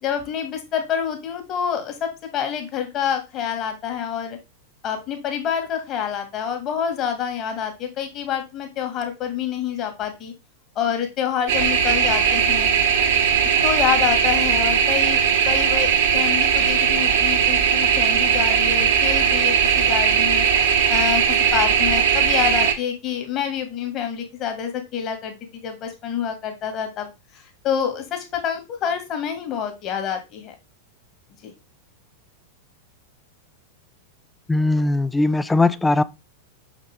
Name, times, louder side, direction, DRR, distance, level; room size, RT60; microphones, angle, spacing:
voice 1, 0.0-4.4 4.8-10.3 10.8-12.7 13.6-30.5 31.4-31.5, left 8 dB, 35° left, 2.1 m, -27 dB
sound 1, 11.5-22.7, right 7 dB, 55° right, 1.2 m, -19 dB
voice 2, 34.5-36.0, left 2 dB, 10° left, 0.4 m, -19 dB
6.5 x 5.1 x 3.5 m
figure-of-eight pair, 90°, 0 cm